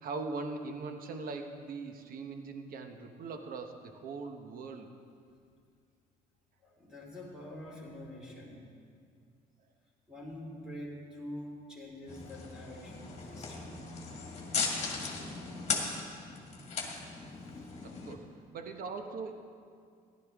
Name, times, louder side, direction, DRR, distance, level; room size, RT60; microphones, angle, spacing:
voice 1, 0.0-4.9 17.8-19.4, right 4 dB, 55° right, 6 dB, 1.0 m, -41 dB
voice 2, 6.6-8.7 10.1-13.8 17.4-17.9, left 1 dB, 5° right, -4 dB, 3.3 m, -46 dB
sound 1, 12.1-18.1, left 4 dB, 40° left, 1.9 m, -37 dB
15.0 x 11.5 x 3.5 m, 2.2 s
cardioid pair, 110°, 17 cm